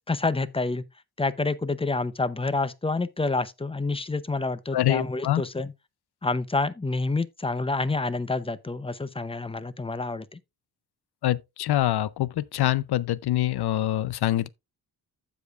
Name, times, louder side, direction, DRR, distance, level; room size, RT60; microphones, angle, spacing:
voice 1, 0.1-0.8 1.2-5.7 6.2-10.4, left 3 dB, 15° left, 0.6 m, -28 dB
voice 2, 4.7-5.4 11.2-14.5, left 13 dB, 70° left, 0.6 m, -25 dB
15.0 x 5.1 x 2.4 m
cardioid pair, 100°, 41 cm